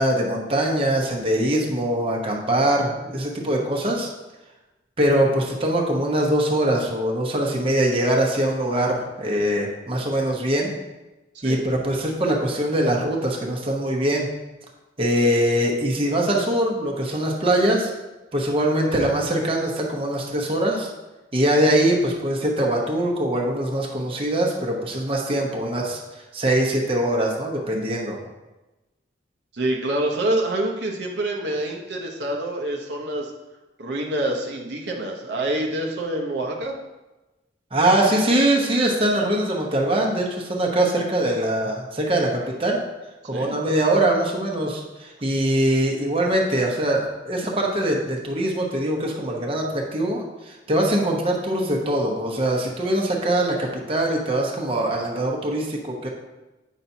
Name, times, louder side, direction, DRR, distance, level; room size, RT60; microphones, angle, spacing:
voice 1, 0.0-4.1 5.0-10.7 11.4-14.3 15.0-17.9 18.3-20.9 21.3-26.0 26.3-28.2 37.7-42.8 43.3-56.1, right 1 dB, 30° right, -1 dB, 0.9 m, -22 dB
voice 2, 29.5-33.3 33.8-36.7 43.2-43.6, right 1 dB, 65° right, 0 dB, 0.8 m, -26 dB
8.1 x 5.8 x 2.7 m, 1.1 s
head